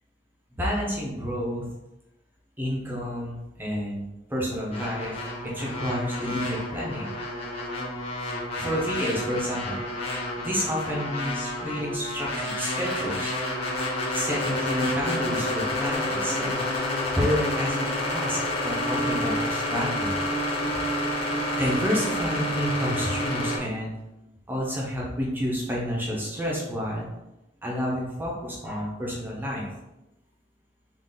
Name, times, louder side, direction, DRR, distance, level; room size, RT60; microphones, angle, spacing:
voice 1, 0.6-1.7 2.6-4.0 4.3-5.2 5.4-7.1 8.5-9.8 10.4-13.3 14.1-16.6 17.2-20.2 21.6-23.9 24.5-27.1 27.6-29.7, equal, 10° right, -4 dB, 0.7 m, -29 dB
sound 1, 4.7-23.6, left 1 dB, 35° left, 0.8 m, -29 dB
3.7 x 2.4 x 3.8 m, 0.95 s
head